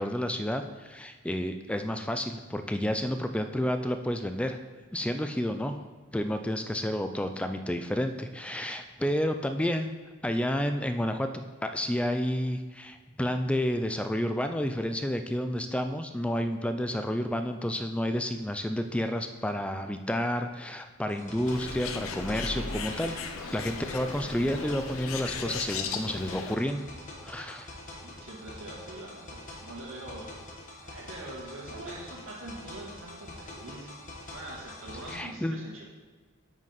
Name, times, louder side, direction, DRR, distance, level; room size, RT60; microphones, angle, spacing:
voice 1, 0.0-4.6 4.9-5.8 6.1-9.9 10.2-23.2 23.5-26.9 27.2-27.7 35.1-35.6, equal, 5° left, 7 dB, 0.4 m, -30 dB
sound 1, 21.1-35.2, left 1 dB, 40° left, 1.2 m, -45 dB
Bird, 21.5-26.6, left 5 dB, 90° left, 0.6 m, -36 dB
voice 2, 28.0-30.3 30.8-33.9 34.3-35.8, right 1 dB, 75° right, -2 dB, 1.9 m, -43 dB
8.6 x 6.1 x 4.0 m, 1.5 s
head